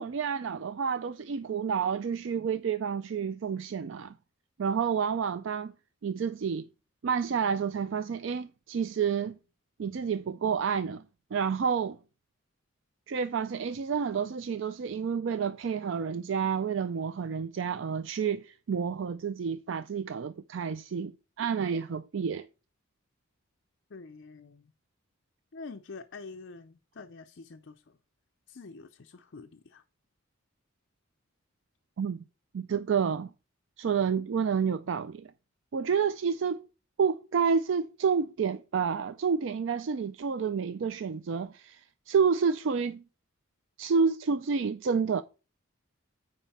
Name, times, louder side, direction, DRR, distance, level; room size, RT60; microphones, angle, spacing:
voice 1, 0.0-4.1 4.6-5.7 6.0-6.7 7.0-9.4 9.8-11.0 11.3-12.0 13.1-22.5 32.0-32.2 32.5-33.3 33.8-35.3 35.7-36.7 37.0-43.0 43.8-45.2, right 6 dB, 60° right, 0.4 m, -29 dB
voice 2, 23.9-24.7 25.5-27.8 28.5-29.8, left 4 dB, 55° left, 0.5 m, -46 dB
9.0 x 4.7 x 4.1 m
head